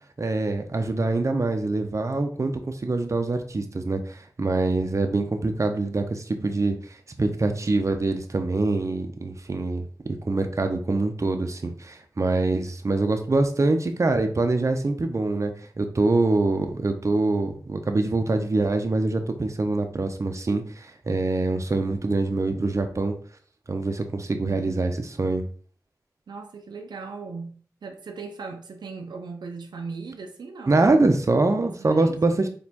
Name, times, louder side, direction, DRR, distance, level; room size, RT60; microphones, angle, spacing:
voice 1, 0.2-23.1 23.7-25.4 30.7-32.5, right 2 dB, 45° right, 0.6 m, -24 dB
voice 2, 26.3-30.9 31.8-32.2, right 4 dB, 90° right, 0.4 m, -38 dB
4.2 x 3.0 x 2.9 m
cardioid pair, 50°, 7 cm